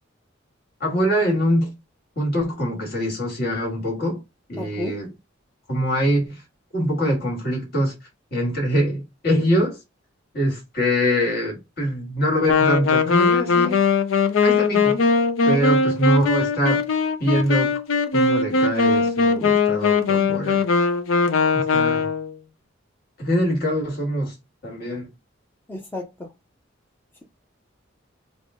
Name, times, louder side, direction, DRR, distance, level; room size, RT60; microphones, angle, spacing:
voice 1, 0.8-1.7 2.1-4.2 4.5-5.1 5.7-6.4 6.7-7.9 8.3-9.8 10.3-13.8 14.4-15.0 15.5-16.8 17.2-17.7 18.1-20.6 21.5-22.1 23.2-24.3 24.6-25.0, equal, 55° left, 1.7 m, -23 dB
voice 2, 4.6-4.9 25.7-26.3, left 2 dB, 10° left, 0.5 m, -32 dB
Wind instrument woodwind instrument, 12.5-22.4, left 4 dB, 90° left, 0.5 m, -20 dB
3.5 x 2.0 x 3.7 m
head